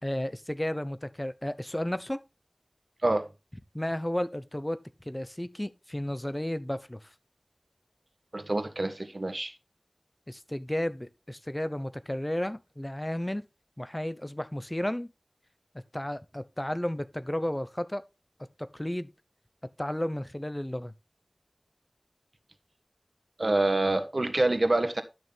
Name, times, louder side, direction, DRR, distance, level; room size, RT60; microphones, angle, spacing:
voice 1, 0.0-2.2 3.7-4.8 5.0-7.1 10.3-13.5 13.8-15.1 15.9-18.0 18.6-19.1 19.8-20.9, left 1 dB, 25° left, 0.9 m, -33 dB
voice 2, 8.3-9.5 23.4-25.0, right 2 dB, 70° right, 1.4 m, -26 dB
11.5 x 6.5 x 3.5 m
wide cardioid pair, 40°, 0 cm